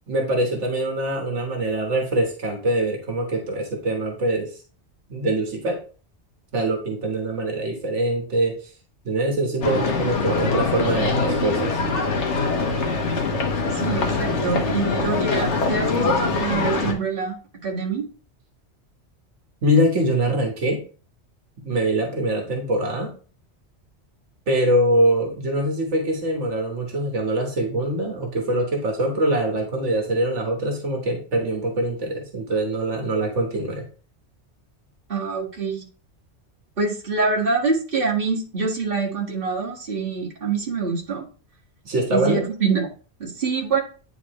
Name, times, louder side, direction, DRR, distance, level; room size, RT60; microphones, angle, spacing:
voice 1, 0.1-4.6 5.1-5.8 6.5-8.7 9.0-11.8 19.6-20.8 21.6-23.1 24.5-33.8 41.8-42.4, right 1 dB, 80° right, 1 dB, 1.6 m, -23 dB
sound 1, 9.6-16.9, left 3 dB, 80° left, 1.4 m, -23 dB
voice 2, 13.7-17.4 17.6-18.0 35.1-35.8 36.8-41.3 42.1-42.9 43.2-43.8, right 4 dB, 50° right, -4 dB, 1.9 m, -25 dB
9.6 x 4.0 x 3.0 m, 0.38 s
omnidirectional pair, 1.2 m